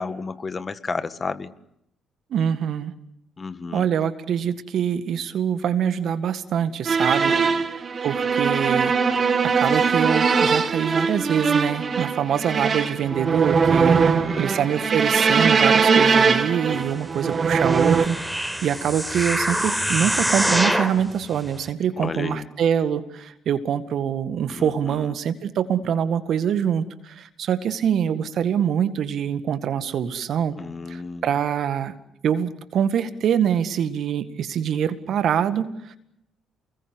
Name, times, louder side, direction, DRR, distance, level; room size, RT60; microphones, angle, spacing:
voice 1, 0.0-1.5 3.4-3.9 7.3-7.6 13.9-14.5 22.0-22.4 24.5-25.1 30.6-31.3, left 4 dB, 35° left, 12 dB, 1.7 m, -32 dB
voice 2, 2.3-2.9 3.7-8.9 9.4-30.6 30.9-31.9 32.2-36.0, right 8 dB, 60° right, 11 dB, 1.9 m, -24 dB
sound 1, 6.9-18.1, right 5 dB, 45° right, 2.2 m, -21 dB
sound 2, 17.4-21.0 21.6-21.7, equal, 5° right, 4.4 m, -25 dB
29.5 x 21.5 x 8.2 m, 0.77 s
hypercardioid pair, 45°, 0 cm